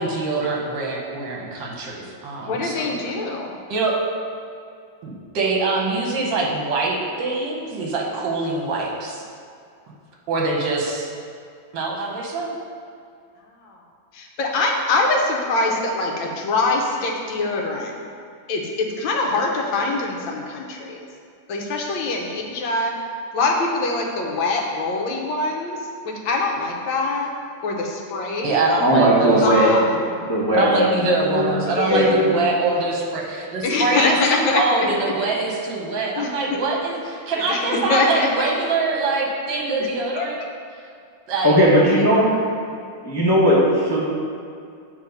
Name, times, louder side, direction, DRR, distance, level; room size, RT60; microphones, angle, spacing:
voice 1, 0.0-3.0 3.7-4.0 5.0-9.2 10.3-11.1 11.7-12.5 28.4-29.4 30.5-40.4 41.3-41.6, right 3 dB, 70° right, -1 dB, 1.7 m, -24 dB
voice 2, 2.4-3.5 13.6-13.8 14.1-17.9 18.5-21.1 21.5-23.0 23.3-27.3 27.6-28.7 29.4-30.2 31.7-32.1 33.6-34.7 36.2-36.3 37.4-38.3 40.2-40.3 41.9-42.2, left 3 dB, 80° left, 0 dB, 1.6 m, -24 dB
voice 3, 28.8-29.7 30.2-30.9 31.2-31.5 31.9-32.3 41.4-42.4 43.0-44.0, equal, 20° left, -7 dB, 0.5 m, -17 dB
7.5 x 3.4 x 5.2 m, 2.3 s
omnidirectional pair, 2.1 m